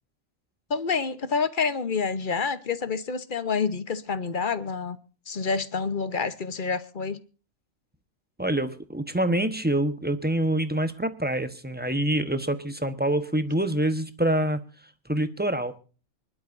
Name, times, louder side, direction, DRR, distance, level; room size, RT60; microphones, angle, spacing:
voice 1, 0.7-5.0 5.3-7.2, left 5 dB, 40° left, 13 dB, 1.0 m, -28 dB
voice 2, 8.4-15.7, right 1 dB, 10° right, 10 dB, 1.0 m, -26 dB
24.5 x 11.5 x 2.6 m, 0.37 s
omnidirectional pair, 1.4 m